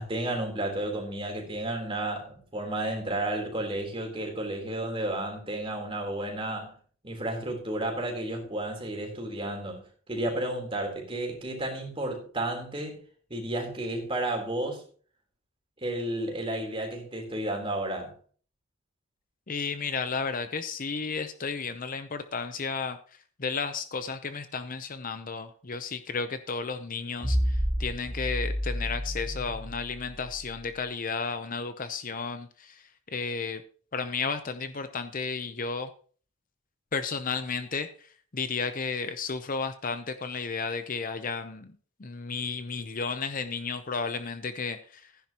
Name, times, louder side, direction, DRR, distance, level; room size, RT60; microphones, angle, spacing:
voice 1, 0.0-6.7 7.0-13.0 13.3-14.8 15.8-18.1, right 1 dB, 25° right, 3.6 m, -32 dB
voice 2, 19.5-33.6 33.9-35.9 36.9-45.1, left 5 dB, 40° left, 0.6 m, -33 dB
sound 1, 27.2-30.6, equal, 15° left, 5.4 m, -30 dB
15.0 x 10.5 x 2.9 m
head